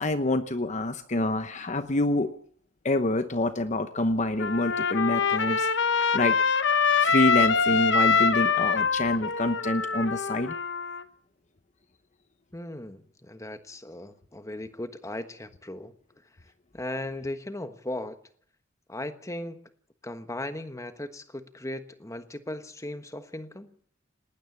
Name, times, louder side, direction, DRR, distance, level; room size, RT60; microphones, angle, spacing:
voice 1, 0.0-2.3 2.8-6.4 7.0-10.5, left 1 dB, 35° left, 10 dB, 1.0 m, -27 dB
Trumpet, 4.4-11.0, left 5 dB, 60° left, 1.2 m, -24 dB
voice 2, 12.5-15.9 16.7-18.2 18.9-19.7 20.0-23.7, left 1 dB, 15° left, 10 dB, 1.3 m, -37 dB
19.5 x 19.0 x 7.2 m, 0.62 s
head